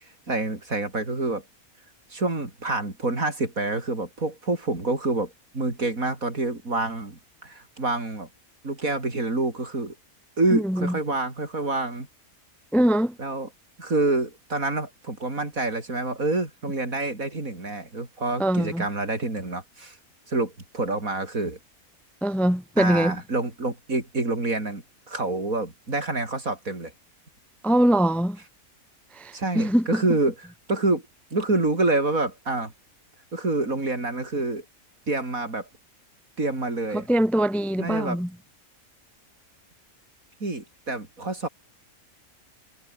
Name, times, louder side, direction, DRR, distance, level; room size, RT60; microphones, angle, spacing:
voice 1, 0.3-1.4 2.1-8.3 8.6-10.0 10.4-12.1 13.2-13.5 13.8-20.0 20.3-21.6 22.8-26.9 29.3-30.3 30.7-31.0 31.3-32.7 33.3-34.7 35.1-35.7 36.4-37.1 37.8-38.2 40.4-41.5, right 2 dB, 70° right, 5.4 m, -27 dB
voice 2, 10.5-11.0 12.7-13.2 18.4-18.9 22.2-23.2 27.6-28.4 29.1-30.0 36.9-38.3, right 1 dB, ahead, 1.0 m, -22 dB
omnidirectional pair, 1.5 m